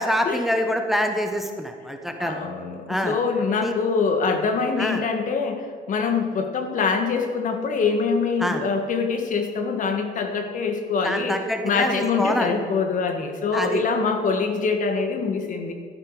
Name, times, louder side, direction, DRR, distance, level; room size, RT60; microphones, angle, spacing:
voice 1, 0.0-2.4 2.9-3.2 3.6-3.7 4.8-5.0 8.4-8.6 11.0-12.5 13.5-13.8, equal, ahead, 5 dB, 1.0 m, -25 dB
voice 2, 2.2-11.4 11.6-15.7, left 5 dB, 50° left, 5 dB, 1.8 m, -24 dB
12.5 x 12.0 x 4.9 m, 2.2 s
cardioid pair, 110°, 17 cm